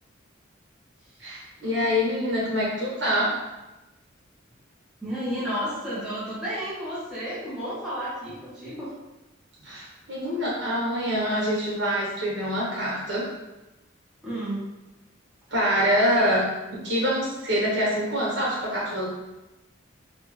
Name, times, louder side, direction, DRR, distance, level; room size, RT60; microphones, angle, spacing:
voice 1, 1.2-3.3 9.6-13.2 15.5-16.4 16.7-19.1, equal, 60° right, -6 dB, 1.3 m, -25 dB
voice 2, 5.0-8.9 14.2-14.6, equal, 5° right, -10 dB, 0.7 m, -32 dB
3.2 x 2.2 x 3.0 m, 1.0 s
head